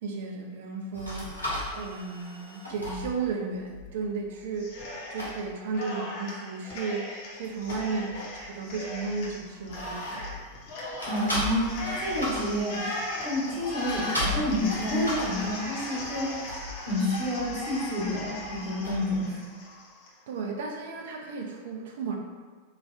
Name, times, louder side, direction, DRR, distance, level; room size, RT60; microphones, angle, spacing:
voice 1, 0.0-1.3 1.7-10.4 20.3-22.2, right 4 dB, 55° right, 1 dB, 0.4 m, -34 dB
sound 1, 0.9-4.9 5.2-5.4 7.4-10.6 11.0-19.2, left 1 dB, 90° left, 0.7 m, -37 dB
Cheering, 4.6-5.4 5.7-20.1, left 1 dB, 50° left, 0.6 m, -38 dB
voice 2, 11.0-12.8 13.2-16.5 16.9-19.4, left 1 dB, 40° right, -7 dB, 1.0 m, -29 dB
3.1 x 2.1 x 2.3 m, 1.5 s
figure-of-eight pair, 90°, 0 cm